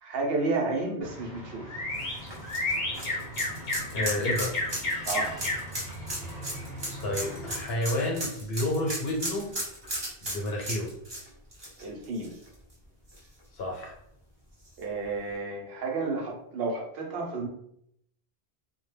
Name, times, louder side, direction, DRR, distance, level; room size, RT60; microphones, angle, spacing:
voice 1, 0.0-1.7 5.1-5.5 11.8-12.3 14.8-17.5, right 3 dB, 75° right, 0 dB, 0.8 m, -31 dB
sound 1, 1.0-7.6, left 2 dB, 45° left, 0.7 m, -33 dB
sound 2, 1.9-12.7 13.1-13.2 14.7-14.8, right 1 dB, 30° right, 0.7 m, -36 dB
voice 2, 3.9-4.5 7.0-9.5 10.2-10.9 13.5-13.9, left 1 dB, 75° left, -1 dB, 1.0 m, -30 dB
2.2 x 2.1 x 3.1 m, 0.72 s
omnidirectional pair, 1.1 m